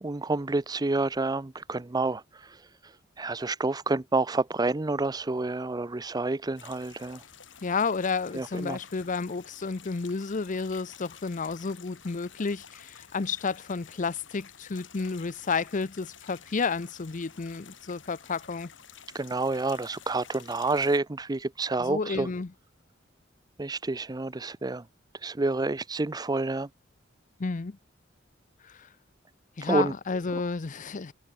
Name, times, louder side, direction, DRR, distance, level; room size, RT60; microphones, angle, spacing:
voice 1, 0.0-2.2 3.2-7.2 8.3-8.8 19.1-22.3 23.6-24.8 25.2-26.7 29.7-29.9, right 3 dB, 20° right, 0.6 m, -28 dB
sound 1, 6.6-21.0, left 8 dB, 70° left, 4.3 m, -51 dB
voice 2, 7.6-18.7 21.8-22.5 27.4-27.8 28.6-28.9 29.6-31.1, left 4 dB, 40° left, 0.6 m, -31 dB
head